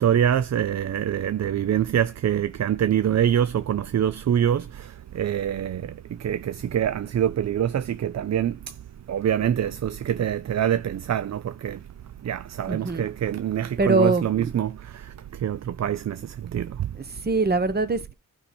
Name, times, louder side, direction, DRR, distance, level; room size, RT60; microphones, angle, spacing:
voice 1, 0.0-4.9 5.1-5.9 6.2-8.6 9.1-11.8 12.2-14.7 15.4-16.2 16.5-16.9, right 10 dB, 55° right, 0.5 m, -24 dB
voice 2, 12.7-13.1 13.8-14.5 16.9-18.1, right 3 dB, 30° right, 1.0 m, -23 dB
15.0 x 5.5 x 4.3 m
wide cardioid pair, 125°, 33 cm